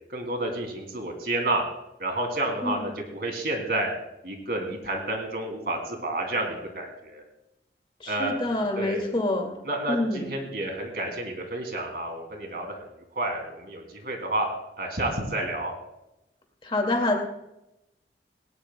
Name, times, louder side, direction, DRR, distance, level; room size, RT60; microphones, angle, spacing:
voice 1, 0.1-1.6 2.0-3.9 4.2-7.2 8.1-8.4 8.8-9.0 9.6-12.8 13.1-14.5 14.8-15.7, right 1 dB, 60° right, 2 dB, 2.8 m, -30 dB
voice 2, 8.0-9.5 9.9-10.3 16.6-17.2, left 2 dB, 30° left, 2 dB, 2.2 m, -26 dB
19.0 x 18.0 x 2.3 m, 0.90 s
head